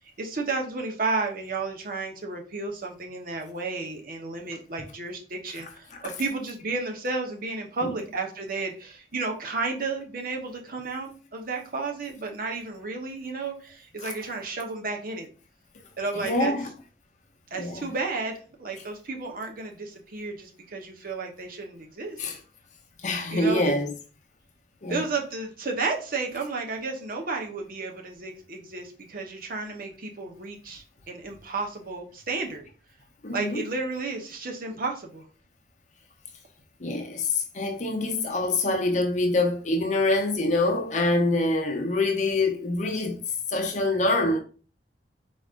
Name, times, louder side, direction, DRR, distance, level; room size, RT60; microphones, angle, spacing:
voice 1, 0.2-15.3 16.0-16.5 17.5-22.2 23.3-23.7 24.9-32.7 33.3-35.2, right 3 dB, 55° right, 0.9 m, -32 dB
voice 2, 5.5-6.3 7.8-8.0 14.0-14.2 16.1-16.8 17.5-17.9 18.8-18.9 22.2-22.4 23.0-24.0 24.8-25.1 33.2-33.7 36.8-44.4, left 2 dB, 45° left, 0.7 m, -26 dB
4.8 x 4.1 x 2.4 m
head